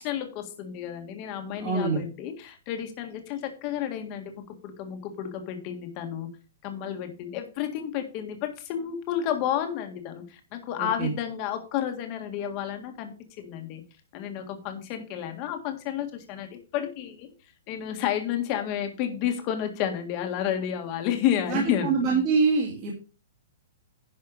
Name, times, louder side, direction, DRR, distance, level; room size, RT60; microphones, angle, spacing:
voice 1, 0.0-6.3 6.6-13.8 14.1-16.5 16.7-17.3 17.7-22.2, left 10 dB, 25° left, 5 dB, 1.7 m, -31 dB
voice 2, 1.6-2.0 10.8-11.1 21.5-22.9, right 4 dB, 25° right, -4 dB, 2.2 m, -25 dB
11.0 x 5.6 x 5.0 m, 0.33 s
hypercardioid pair, 180°, 0 cm